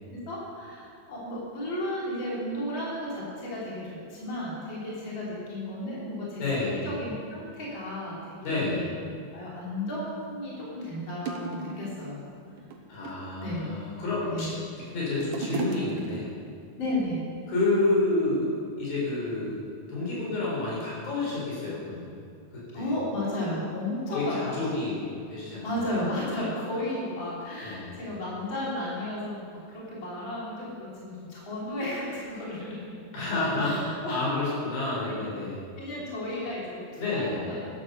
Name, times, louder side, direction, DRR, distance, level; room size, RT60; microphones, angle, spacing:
voice 1, 0.1-8.9 9.3-12.2 13.4-13.7 14.3-14.5 16.8-17.2 22.7-24.6 25.4-32.9 33.6-34.2 34.6-34.7 35.8-37.6, left 1 dB, 30° left, -7 dB, 4.1 m, -34 dB
voice 2, 6.4-6.9 8.4-8.9 12.9-16.3 17.5-19.6 19.9-22.1 22.5-22.9 24.1-25.7 27.6-28.0 33.1-35.6 37.0-37.5, left 2 dB, 70° left, -6 dB, 6.0 m, -29 dB
sound 1, 10.0-10.1 10.8-10.9 11.3-12.1 12.6-13.3 14.0-14.6 14.9-16.5 17.3-17.4, right 4 dB, 70° right, 2.4 m, -35 dB
12.0 x 11.0 x 6.8 m, 2.3 s
omnidirectional pair, 4.3 m